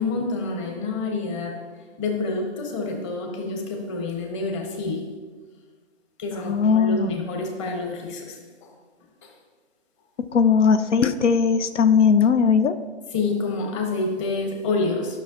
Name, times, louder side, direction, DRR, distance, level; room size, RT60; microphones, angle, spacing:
voice 1, 0.0-1.6 2.0-5.1 6.2-8.7 9.2-9.3 13.1-15.2, left 3 dB, 25° left, 2 dB, 1.3 m, -28 dB
voice 2, 6.4-7.1 10.3-12.8, left 6 dB, 90° left, 11 dB, 0.6 m, -18 dB
13.0 x 6.2 x 2.8 m, 1.5 s
hypercardioid pair, 150°, 35 cm